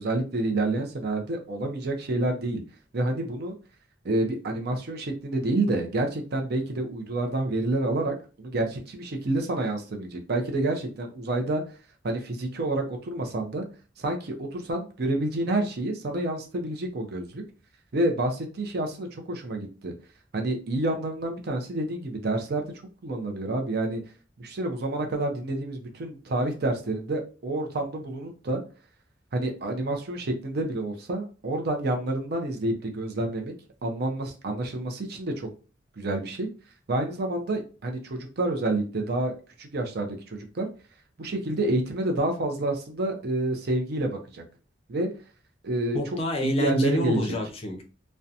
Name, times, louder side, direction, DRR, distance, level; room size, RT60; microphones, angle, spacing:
voice 1, 0.0-2.6 2.9-3.5 4.0-11.6 12.0-13.6 14.0-17.4 17.9-19.9 20.3-22.6 23.0-24.0 24.4-28.6 29.3-33.5 33.8-35.5 36.0-36.5 36.9-39.3 39.6-40.7 41.2-44.4 44.9-45.1 45.6-46.0 46.4-47.4, right 2 dB, 60° right, 3 dB, 0.5 m, -28 dB
voice 2, 45.9-47.8, left 1 dB, 30° left, 3 dB, 0.5 m, -28 dB
2.7 x 2.1 x 2.4 m, 0.35 s
head